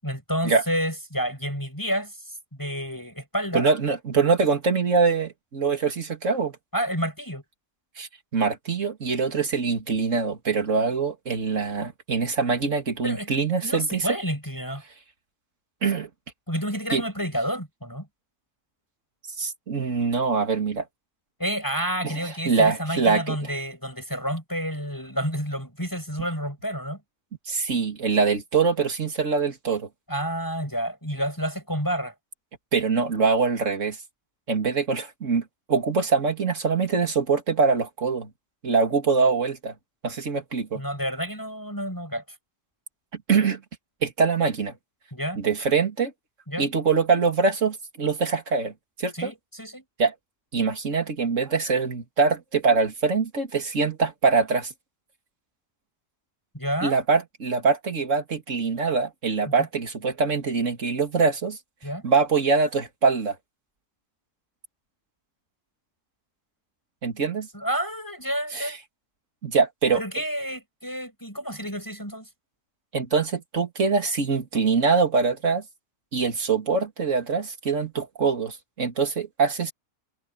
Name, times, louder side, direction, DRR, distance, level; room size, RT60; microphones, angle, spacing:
voice 1, 0.0-3.6 6.7-7.4 13.0-14.8 16.5-18.1 21.4-27.0 30.1-32.1 40.8-42.4 45.1-45.4 46.5-46.7 49.1-49.8 56.5-57.0 59.5-59.6 61.8-62.1 67.5-68.8 69.9-72.3, equal, 10° left, 7.7 m, -30 dB
voice 2, 3.5-6.5 8.0-14.0 15.8-16.1 16.9-17.0 19.4-20.8 22.0-22.1 22.4-23.5 27.5-29.9 32.7-34.0 34.5-35.4 35.7-38.3 38.6-39.7 40.0-40.8 43.3-43.6 44.0-44.7 45.4-46.1 46.6-48.7 49.0-49.3 50.0-50.1 50.5-54.7 56.8-61.6 62.0-63.4 67.0-67.5 68.5-68.7 69.4-70.0 72.9-75.6 76.1-79.7, right 5 dB, 45° right, 2.8 m, -23 dB
omnidirectional pair, 1.8 m